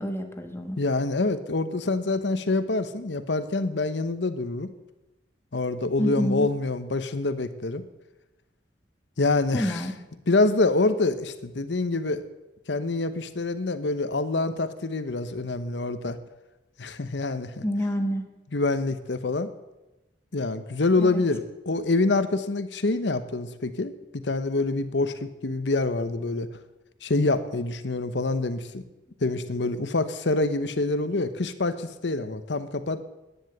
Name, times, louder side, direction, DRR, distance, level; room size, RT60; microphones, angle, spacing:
voice 1, 0.0-0.8 6.0-6.5 9.5-9.9 17.6-18.3 21.0-21.2, equal, 15° left, 5 dB, 1.4 m, -28 dB
voice 2, 0.8-4.7 5.5-7.8 9.2-9.8 10.3-12.2 12.7-16.2 16.8-17.6 18.5-19.5 20.3-26.5 27.0-28.8 29.2-33.0, left 2 dB, 80° left, 11 dB, 1.0 m, -26 dB
10.5 x 9.9 x 7.9 m, 1.0 s
head